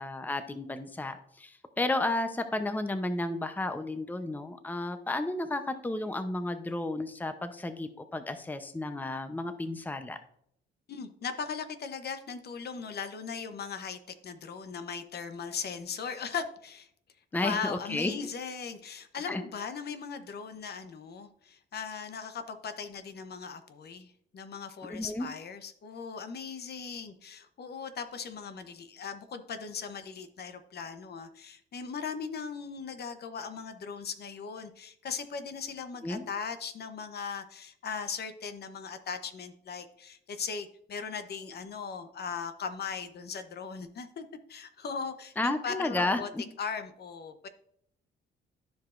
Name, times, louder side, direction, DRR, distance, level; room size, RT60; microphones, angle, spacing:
voice 1, 0.0-10.2 17.3-18.1 19.3-19.4 24.9-25.3 36.0-36.2 45.4-46.4, left 2 dB, 10° left, 9 dB, 0.7 m, -32 dB
voice 2, 10.9-16.9 17.3-46.3 46.6-47.5, left 6 dB, 55° left, 9 dB, 0.9 m, -38 dB
13.5 x 4.9 x 2.5 m, 0.68 s
cardioid pair, 90°, 20 cm